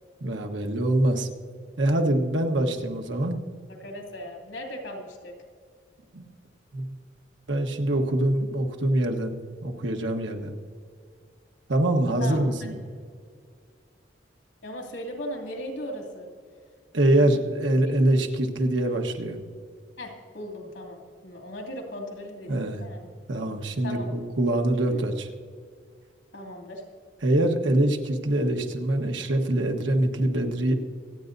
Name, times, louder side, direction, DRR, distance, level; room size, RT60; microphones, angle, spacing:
voice 1, 0.2-1.3 1.8-3.4 6.1-6.3 6.7-7.0 7.5-10.5 11.7-12.8 16.9-19.4 22.5-22.9 23.3-25.3 27.2-30.7, right 1 dB, 85° right, 4 dB, 1.3 m, -24 dB
voice 2, 3.8-5.3 12.2-12.5 14.6-16.3 17.1-17.3 20.0-23.1 23.8-24.1 24.9-25.0 26.3-26.8, left 1 dB, 85° left, 1 dB, 2.7 m, -37 dB
25.5 x 9.1 x 2.7 m, 2.1 s
head